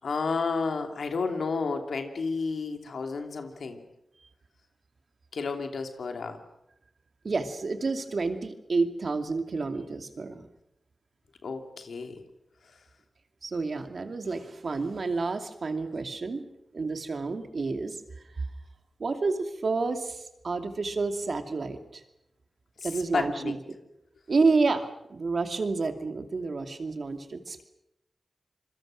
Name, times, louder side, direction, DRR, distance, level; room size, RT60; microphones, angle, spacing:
voice 1, 0.0-3.8 5.3-6.4 11.4-12.2 12.6-12.8 22.8-23.5, left 4 dB, 85° left, 5 dB, 2.8 m, -31 dB
voice 2, 7.2-10.5 13.4-16.4 16.7-18.0 19.0-22.0 22.8-23.6 24.3-27.6, right 3 dB, 65° right, 7 dB, 2.6 m, -29 dB
27.0 x 22.0 x 6.4 m, 0.85 s
cardioid pair, 50°, 0 cm